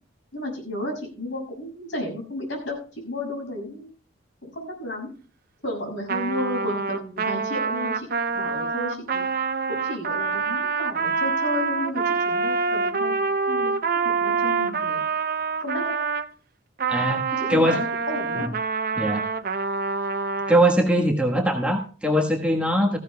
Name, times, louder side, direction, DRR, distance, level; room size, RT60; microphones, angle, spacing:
voice 1, 0.3-3.9 4.4-5.1 5.6-8.1 8.3-9.3 9.7-13.2 13.5-13.7 14.0-15.0 15.6-16.0 17.4-18.5, left 1 dB, 65° left, 1 dB, 6.6 m, -32 dB
Trumpet, 6.1-16.3 16.8-20.6, right 4 dB, 50° right, 0.6 m, -26 dB
voice 2, 16.9-17.2 17.5-17.8 18.4-18.5 18.9-19.2 20.5-23.0, right 1 dB, 5° right, -1 dB, 1.3 m, -21 dB
17.5 x 15.0 x 2.3 m, 0.38 s
head